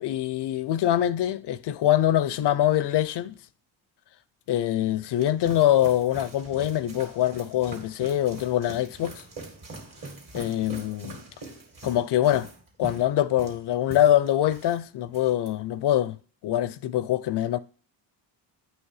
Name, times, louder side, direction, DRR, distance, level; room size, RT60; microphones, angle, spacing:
voice 1, 0.0-3.3 4.5-9.2 10.3-11.2 11.8-12.5 12.8-16.2 16.4-17.6, left 12 dB, 55° left, 0.6 m, -24 dB
sound 1, 4.8-14.8 15.1-15.5, right 3 dB, 40° right, 2.4 m, -43 dB
8.2 x 3.2 x 4.8 m
supercardioid pair, 70°, 48 cm